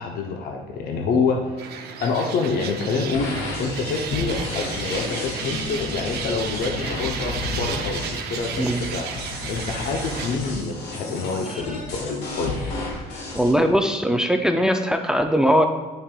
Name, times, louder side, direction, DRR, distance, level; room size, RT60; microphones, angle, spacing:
voice 1, 0.0-9.1 9.5-12.6, left 4 dB, 65° left, 2 dB, 0.7 m, -27 dB
sound 1, 1.6-10.4, right 7 dB, 70° right, 0.6 m, -34 dB
sound 2, 3.1-13.5, left 2 dB, 80° left, 1.6 m, -32 dB
voice 2, 13.3-15.7, equal, 5° right, 6 dB, 0.4 m, -20 dB
8.7 x 5.3 x 2.3 m, 1.4 s
cardioid pair, 110°, 17 cm